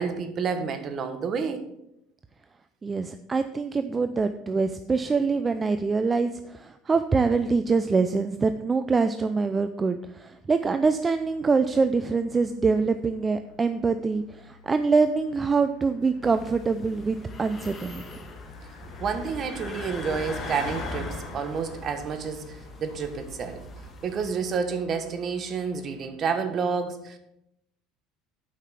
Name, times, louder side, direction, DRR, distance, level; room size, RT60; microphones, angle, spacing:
voice 1, 0.0-1.7 19.0-23.7 24.0-27.2, right 5 dB, 45° right, 8 dB, 1.2 m, -29 dB
voice 2, 2.8-18.0, right 4 dB, 25° right, 10 dB, 0.4 m, -24 dB
Car passing by, 10.4-26.1, left 2 dB, 50° left, 2.2 m, -46 dB
sound 1, 16.2-24.3, left 2 dB, 25° left, 1.4 m, -41 dB
8.3 x 5.7 x 5.7 m, 0.82 s
supercardioid pair, 105°, 0 cm